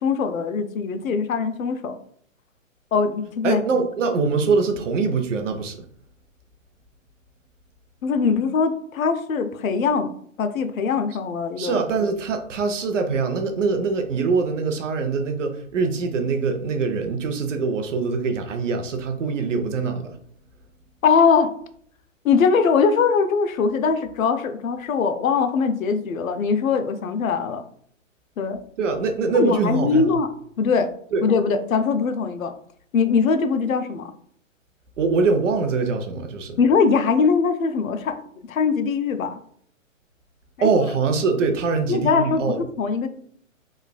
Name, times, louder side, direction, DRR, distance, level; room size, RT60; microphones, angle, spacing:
voice 1, 0.0-2.0 2.9-3.6 8.0-10.1 10.4-11.8 21.0-21.5 22.2-27.6 28.4-28.6 29.4-30.3 30.6-30.9 31.2-32.5 32.9-34.1 36.6-39.4 40.6-40.7 41.9-43.1, left 5 dB, 85° left, 9 dB, 0.5 m, -21 dB
voice 2, 3.4-5.8 11.6-20.1 28.8-30.1 31.1-31.2 35.0-36.6 40.6-42.6, right 4 dB, 65° right, 6 dB, 0.6 m, -23 dB
3.0 x 2.4 x 2.3 m, 0.63 s
hypercardioid pair, 140°, 40 cm